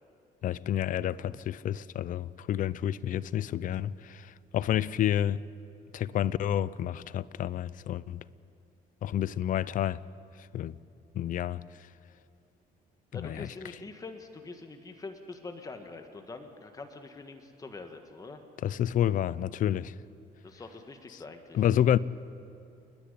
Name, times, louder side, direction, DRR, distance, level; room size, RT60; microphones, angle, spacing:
voice 1, 0.4-5.4 5.9-8.2 9.0-10.0 10.5-10.8 11.1-11.6 13.1-13.5 18.6-19.9 21.5-22.0, left 11 dB, 50° left, 0.5 m, -29 dB
voice 2, 13.1-18.4 20.4-21.6, left 3 dB, 20° left, 1.5 m, -44 dB
29.0 x 10.5 x 10.0 m
cardioid pair, 110°, 17 cm